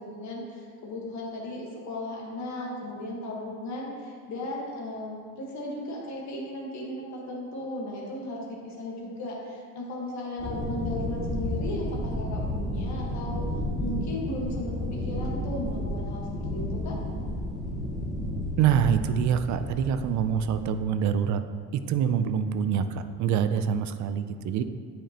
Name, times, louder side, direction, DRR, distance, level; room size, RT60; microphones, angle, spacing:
voice 1, 0.0-13.4 13.8-16.9, left 1 dB, 45° left, -3 dB, 1.5 m, -36 dB
sound 1, 10.4-20.6, left 1 dB, ahead, 1.6 m, -32 dB
voice 2, 18.6-21.4 21.7-24.6, right 8 dB, 50° right, 10 dB, 0.4 m, -25 dB
8.9 x 5.1 x 2.9 m, 2.1 s
cardioid pair, 130°, 38 cm